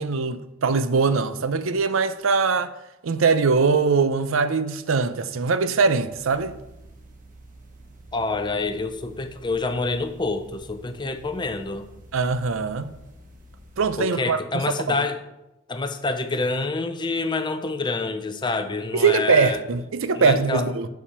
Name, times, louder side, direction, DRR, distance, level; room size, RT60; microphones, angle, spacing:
voice 1, 0.0-2.7 3.0-6.6 12.1-12.9 13.8-14.6 18.9-20.9, right 4 dB, 70° right, 0.5 m, -22 dB
sound 1, 6.1-13.8, right 1 dB, 40° right, 1.2 m, -48 dB
voice 2, 8.1-11.9 14.0-15.2 15.7-19.6 20.1-20.7, left 3 dB, 20° left, 0.6 m, -27 dB
7.1 x 7.0 x 4.3 m
head